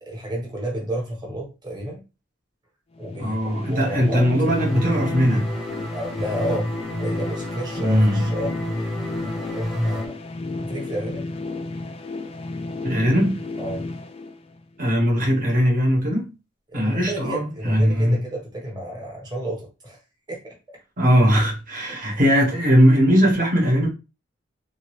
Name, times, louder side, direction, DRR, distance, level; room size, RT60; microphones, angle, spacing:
voice 1, 0.0-2.0 3.0-4.3 5.9-6.7 7.0-8.5 9.4-10.1 10.6-11.3 13.6-13.8 16.7-20.0 20.3-20.6 21.9-22.2, right 1 dB, 20° right, 1.1 m, -31 dB
sound 1, 3.0-14.9, left 3 dB, 30° left, 0.3 m, -33 dB
voice 2, 3.2-5.5 7.8-8.2 12.8-13.4 14.8-16.3 16.7-18.2 21.0-23.9, equal, 45° right, 1.1 m, -19 dB
sound 2, 4.5-10.0, equal, ahead, 0.7 m, -29 dB
2.6 x 2.6 x 3.1 m
head